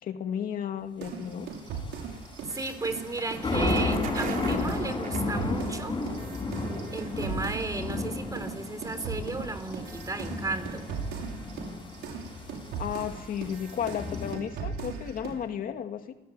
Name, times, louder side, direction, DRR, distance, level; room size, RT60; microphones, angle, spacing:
voice 1, 0.0-1.5 12.8-16.1, left 9 dB, 55° left, 6 dB, 2.3 m, -33 dB
sound 1, 1.0-8.1 8.4-15.5, right 6 dB, 80° right, 6.2 m, -38 dB
sound 2, 1.3-14.3, left 2 dB, 25° left, 7.8 m, -33 dB
sound 3, 1.4-5.8, right 7 dB, 55° right, 3.3 m, -42 dB
voice 2, 2.4-6.0 6.9-10.9, right 3 dB, 20° right, 10 dB, 4.0 m, -34 dB
29.0 x 19.5 x 9.7 m, 0.96 s
cardioid pair, 110°, 17 cm